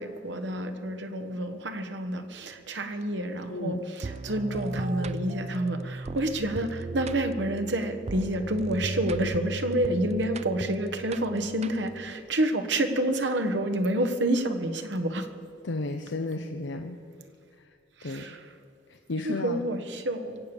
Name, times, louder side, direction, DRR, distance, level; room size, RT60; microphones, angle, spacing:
voice 1, 0.0-15.3 18.0-18.4 19.2-20.4, right 1 dB, 70° right, 7 dB, 1.3 m, -29 dB
voice 2, 3.5-3.8 15.6-17.0 18.0-18.3 18.9-19.6, left 2 dB, 75° left, 5 dB, 0.8 m, -33 dB
sound 1, 4.0-12.1, right 2 dB, 35° right, 0.4 m, -37 dB
24.0 x 8.3 x 7.1 m, 2.3 s
head